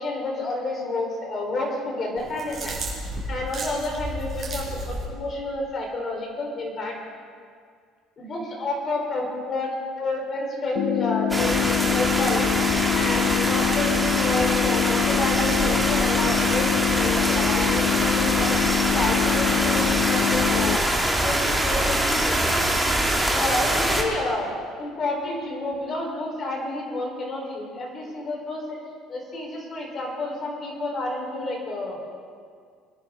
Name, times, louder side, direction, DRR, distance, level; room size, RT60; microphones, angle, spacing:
voice 1, 0.0-2.8 3.3-7.0 8.2-22.7 23.3-24.5 24.8-28.8 29.1-32.0, left 2 dB, 35° left, 0 dB, 3.8 m, -30 dB
sound 1, 2.2-5.1, right 1 dB, 30° right, 4.4 m, -33 dB
sound 2, 10.8-20.8, left 11 dB, 65° left, 0.4 m, -25 dB
sound 3, 11.3-24.0, right 1 dB, 5° right, 1.7 m, -24 dB
22.5 x 10.5 x 3.6 m, 2.1 s
cardioid pair, 120°, 0 cm